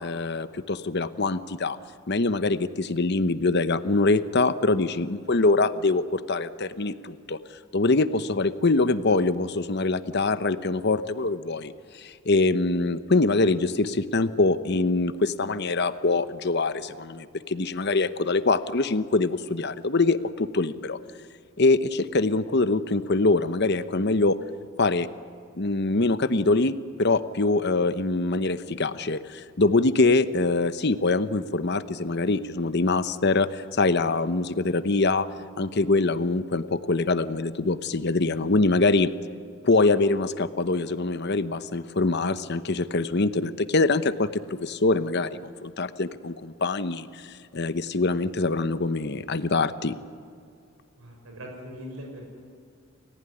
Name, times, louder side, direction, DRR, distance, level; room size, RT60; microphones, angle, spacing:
voice 1, 0.0-1.8 2.1-7.4 7.7-21.0 21.6-24.4 24.8-25.1 25.5-26.7 27.0-35.3 35.6-39.1 39.6-50.0, left 3 dB, 50° left, 12 dB, 0.9 m, -24 dB
voice 2, 51.0-52.4, equal, 85° right, 1 dB, 5.9 m, -41 dB
29.5 x 15.5 x 10.0 m, 2.4 s
head